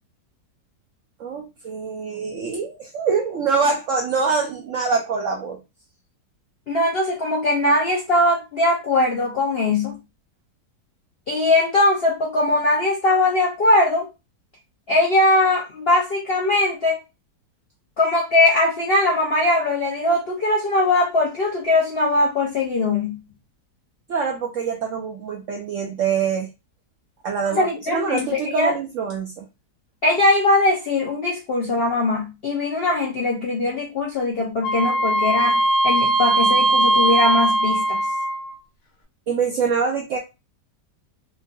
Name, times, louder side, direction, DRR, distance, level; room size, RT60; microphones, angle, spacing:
voice 1, 1.2-5.6 24.1-26.5 27.2-29.4 39.3-40.2, right 5 dB, 75° right, 0.7 m, -24 dB
voice 2, 6.7-10.0 11.3-14.1 14.9-17.0 18.0-23.2 27.5-28.7 30.0-38.0, left 2 dB, 70° left, 0.5 m, -20 dB
Wind instrument woodwind instrument, 34.6-38.5, right 1 dB, 90° left, 1.5 m, -19 dB
3.6 x 2.3 x 2.5 m
omnidirectional pair, 1.8 m